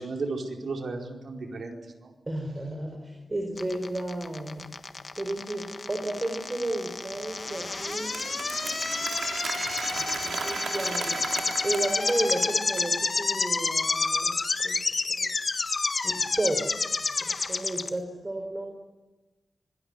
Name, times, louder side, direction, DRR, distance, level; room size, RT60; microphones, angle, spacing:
voice 1, 0.0-2.1, right 3 dB, 70° right, 2 dB, 4.6 m, -34 dB
voice 2, 2.3-4.7 5.2-9.1 9.9-11.2 11.6-14.3 14.6-14.8 15.2-15.3 16.0-16.6 17.2-18.7, right 1 dB, 25° right, 4 dB, 4.2 m, -33 dB
sound 1, 3.6-17.9, left 3 dB, 45° left, 1.5 m, -29 dB
Applause, 7.1-12.9, right 5 dB, 90° right, 3.4 m, -36 dB
25.5 x 19.5 x 9.8 m, 1.1 s
wide cardioid pair, 130°, 0 cm